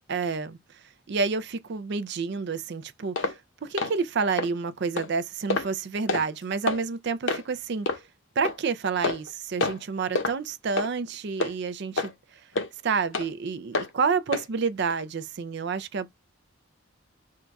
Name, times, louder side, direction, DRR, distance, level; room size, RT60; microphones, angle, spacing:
voice 1, 0.1-8.0 8.4-12.5 12.8-16.1, right 5 dB, 55° right, 0.4 m, -29 dB
sound 1, 3.2-3.4 3.8-3.9 4.4-4.5 5.0-5.1 5.5-5.7 6.1-6.3 6.7-6.8 7.3-7.4 7.9-8.0 8.4-8.6 9.0-9.3 9.6-9.8 10.1-10.3 10.8-10.9 11.4-11.5 12.0-12.1 12.5-12.7 13.1-13.3 13.7-13.9 14.3-14.5 14.9-15.0, left 3 dB, 65° left, 0.8 m, -27 dB
3.7 x 2.3 x 4.0 m
head